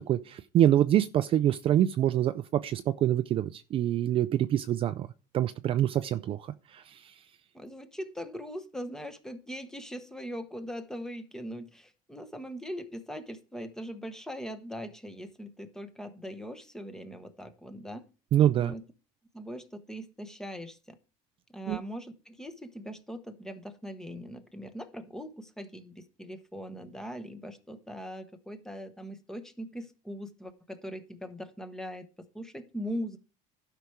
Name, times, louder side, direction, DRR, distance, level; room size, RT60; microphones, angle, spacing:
voice 1, 0.1-5.1 5.3-7.1 18.3-18.7 21.7-21.8, right 11 dB, 35° right, 0.4 m, -26 dB
voice 2, 7.5-18.1 18.5-18.8 19.3-21.0 21.5-33.2, equal, 5° left, 1.0 m, -41 dB
12.0 x 5.7 x 4.7 m
cardioid pair, 155°, 16 cm